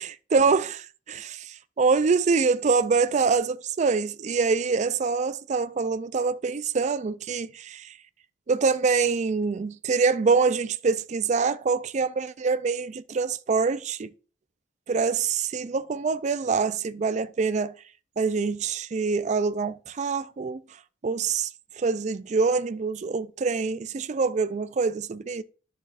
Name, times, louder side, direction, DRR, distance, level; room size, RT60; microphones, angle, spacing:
voice 1, 0.3-8.0 8.5-14.1 14.9-17.7 18.2-20.6 21.0-21.5 21.8-25.4, right 4 dB, 35° right, 0.3 m, -25 dB
11.5 x 6.6 x 2.5 m
head